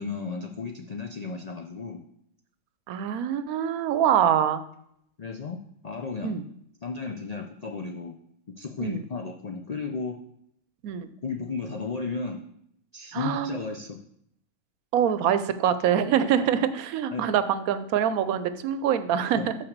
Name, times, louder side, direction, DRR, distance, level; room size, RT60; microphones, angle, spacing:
voice 1, 0.0-2.0 5.2-5.6 5.8-6.4 6.8-8.2 8.6-10.2 11.2-12.4 12.9-14.0 17.1-17.2 19.4-19.5, left 4 dB, 75° left, 4 dB, 0.3 m, -34 dB
voice 2, 2.9-4.7 6.2-6.4 8.8-9.1 10.8-11.1 13.1-13.6 14.9-19.5, right 9 dB, 80° right, 12 dB, 1.0 m, -25 dB
5.9 x 4.9 x 6.5 m, 0.71 s
omnidirectional pair, 1.5 m